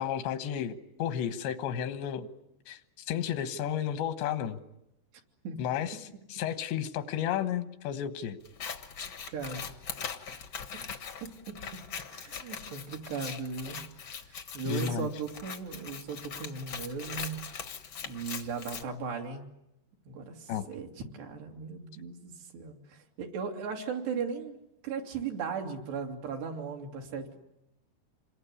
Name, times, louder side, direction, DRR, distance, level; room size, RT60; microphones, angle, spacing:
voice 1, 0.0-2.3 2.7-2.8 3.1-4.6 5.6-8.4 14.7-15.1 20.5-20.7, left 9 dB, 90° left, 11 dB, 3.5 m, -32 dB
Scissors, 8.4-18.8, left 6 dB, 65° left, 1.2 m, -41 dB
voice 2, 9.3-9.7 11.5-11.6 12.1-13.8 14.3-17.4 18.1-19.5 20.1-20.9 21.1-24.6 24.8-27.4, right 5 dB, 75° right, 1 dB, 4.7 m, -37 dB
28.0 x 22.0 x 9.8 m, 0.85 s
omnidirectional pair, 4.8 m